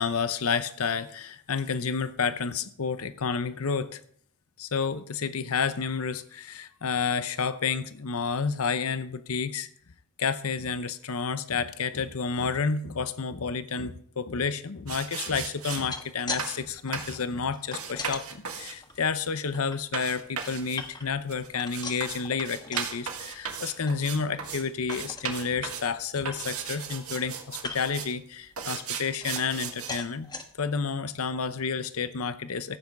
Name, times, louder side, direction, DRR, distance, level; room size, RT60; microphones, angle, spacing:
voice 1, 0.0-4.0 4.6-9.7 10.2-30.3 30.6-32.8, left 5 dB, 75° left, 13 dB, 0.8 m, -30 dB
sound 1, 14.9-15.8 16.4-16.6 16.9-17.2 17.7-24.6 24.9-25.9 26.2-28.1 28.6-30.0, right 7 dB, 80° right, 1.9 m, -36 dB
sound 2, 15.6-16.5 16.7-18.2 18.8-19.8 20.2-21.2 21.5-23.0 23.3-23.6 23.9-24.0 24.4-24.6 24.9-25.3 25.8-25.9 26.2-27.0 27.6-28.0 28.6-29.6 29.9-30.5 31.1-31.2 31.5-31.6, left 3 dB, 20° left, 1.2 m, -40 dB
14.5 x 8.4 x 5.3 m, 0.63 s
head